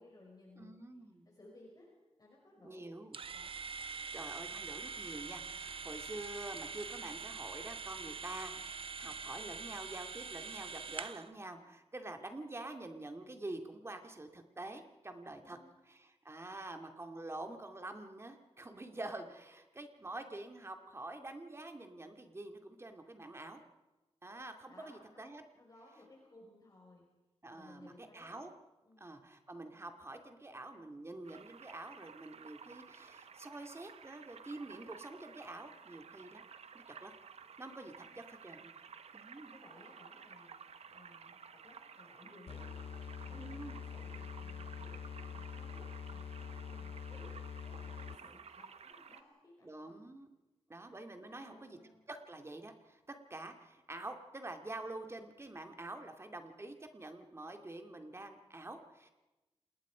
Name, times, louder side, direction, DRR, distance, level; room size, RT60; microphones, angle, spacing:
voice 1, 0.0-0.8 1.3-1.9 2.2-3.0 3.3-3.5 15.4-15.8 24.7-25.3 25.5-27.1 27.5-28.4 28.9-29.1 38.0-38.5 39.5-47.3 47.6-50.0 51.3-52.1, left 2 dB, 35° left, -2 dB, 5.5 m, -60 dB
voice 2, 0.6-1.3 2.6-3.2 4.1-15.6 15.8-23.6 24.2-25.4 27.4-28.5 29.0-36.4 37.0-37.1 37.6-38.7 39.1-39.5 43.3-43.8 49.6-50.3 50.7-51.8 52.1-59.1, right 2 dB, 25° right, 6 dB, 2.3 m, -47 dB
sound 1, 3.1-11.3, right 5 dB, 55° right, 0.9 m, -44 dB
sound 2, 31.2-49.2, right 6 dB, 75° right, 1.0 m, -54 dB
sound 3, 42.5-48.4, left 7 dB, 65° left, 0.6 m, -45 dB
28.5 x 20.0 x 5.0 m, 1.1 s
wide cardioid pair, 130°, 11 cm